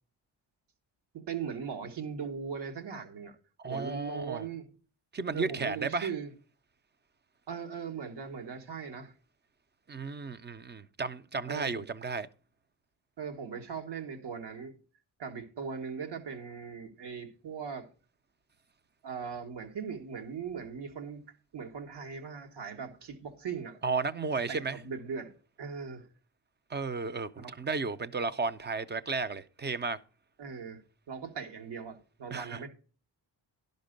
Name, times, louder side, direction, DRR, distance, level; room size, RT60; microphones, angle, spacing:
voice 1, 1.1-3.3 3.7-4.7 5.3-6.3 7.5-9.1 11.5-11.8 13.2-14.8 15.2-17.9 19.0-21.2 21.5-23.8 24.5-25.3 25.6-26.1 27.4-27.5 30.4-30.8 31.1-32.7, right 6 dB, 70° right, 1.5 m, -39 dB
voice 2, 3.6-4.4 5.1-6.1 9.9-12.3 23.8-24.8 26.7-30.0 32.3-32.7, right 4 dB, 25° right, 0.5 m, -33 dB
11.5 x 5.3 x 5.1 m
cardioid pair, 95°, 42 cm